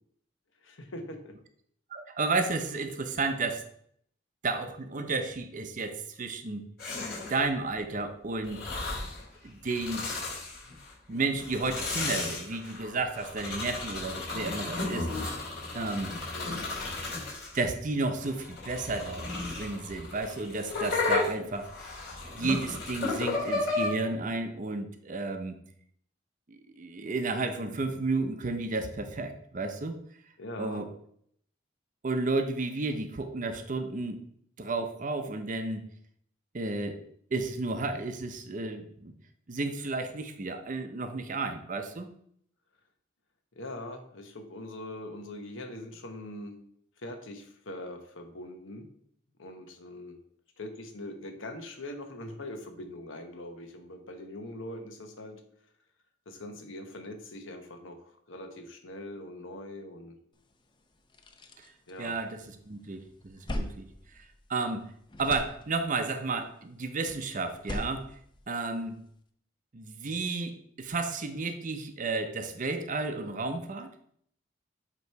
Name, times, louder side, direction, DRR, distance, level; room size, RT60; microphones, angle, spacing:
voice 1, 0.6-1.3 16.3-16.7 30.4-30.8 43.5-46.6 47.0-48.9 49.4-50.2 50.6-55.4 56.3-60.2 61.9-62.1, left 1 dB, 85° left, 5 dB, 1.0 m, -42 dB
voice 2, 1.9-3.6 4.4-6.6 7.3-8.6 9.4-10.0 11.1-15.3 15.7-16.1 17.5-22.0 22.3-25.6 26.5-30.0 30.6-30.9 32.0-34.2 34.6-35.8 36.5-37.0 37.3-39.1 39.5-42.1 62.0-63.9 64.2-64.3 64.5-64.9 65.2-68.1 68.5-69.0 69.7-73.9, right 3 dB, 40° right, 7 dB, 0.6 m, -32 dB
sound 1, 6.8-7.5 8.4-9.2 9.6-10.9 11.4-17.6 18.2-23.9, left 3 dB, 55° left, 2.6 m, -33 dB
sound 2, 60.5-60.6 60.9-62.6 63.0-64.8 65.1-66.1 67.4-69.1, left 1 dB, 25° left, 0.5 m, -40 dB
8.1 x 3.0 x 4.6 m, 0.67 s
head